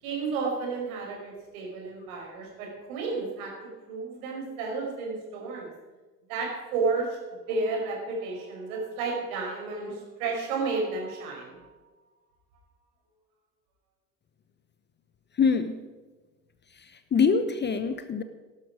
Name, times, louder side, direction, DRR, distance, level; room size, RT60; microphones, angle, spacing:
voice 1, 0.0-5.7 6.3-11.6, right 4 dB, 60° right, -1 dB, 5.5 m, -32 dB
voice 2, 15.4-15.8 17.1-18.2, left 5 dB, 20° left, 11 dB, 0.9 m, -24 dB
17.5 x 12.5 x 5.0 m, 1.2 s
figure-of-eight pair, 65°, 48 cm